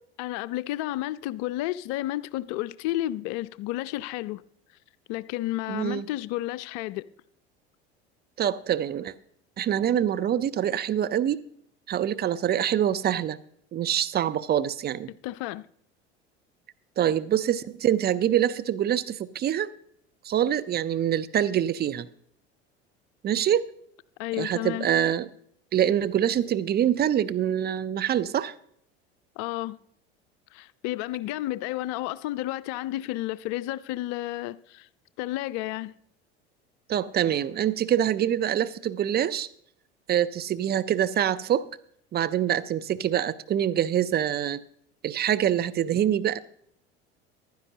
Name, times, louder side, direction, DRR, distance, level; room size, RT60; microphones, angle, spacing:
voice 1, 0.2-4.4 5.1-7.1 15.1-15.7 24.2-24.9 29.4-29.8 30.5-34.9 35.2-35.9, left 16 dB, 55° left, 0.5 m, -31 dB
voice 2, 5.7-6.0 8.4-9.1 9.6-11.4 11.9-13.4 13.7-15.1 17.0-19.7 20.2-22.1 23.2-23.7 24.4-25.3 25.7-28.5 36.9-39.5 40.1-41.7 42.1-44.6 45.0-46.4, right 10 dB, 30° right, 0.5 m, -25 dB
15.0 x 11.5 x 2.8 m
hypercardioid pair, 75°, 32 cm